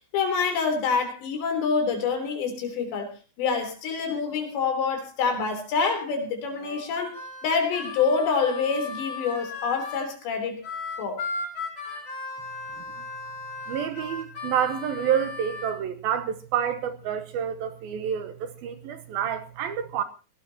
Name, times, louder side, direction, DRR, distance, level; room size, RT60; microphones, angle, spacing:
voice 1, 0.1-7.2 7.4-10.6 11.0-11.2, left 5 dB, 80° left, 5.8 m, -26 dB
Harmonica, 6.6-10.1 10.6-15.7, left 4 dB, 45° left, 6.9 m, -36 dB
voice 2, 13.7-20.0, right 8 dB, 70° right, 2.6 m, -28 dB
19.5 x 18.0 x 2.9 m
omnidirectional pair, 5.0 m